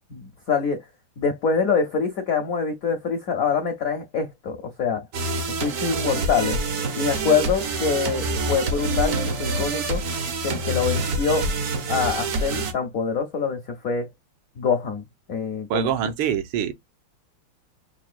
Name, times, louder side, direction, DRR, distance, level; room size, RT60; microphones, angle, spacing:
voice 1, 0.1-0.8 1.2-5.0 5.6-6.6 6.9-10.0 10.4-11.5 11.9-14.1 14.6-15.0 15.3-15.9, left 5 dB, 70° left, 0.8 m, -25 dB
sound 1, 5.1-12.7, right 2 dB, 60° right, 0.8 m, -26 dB
voice 2, 15.7-16.7, right 9 dB, 75° right, 1.5 m, -24 dB
5.8 x 2.2 x 2.4 m
omnidirectional pair, 2.4 m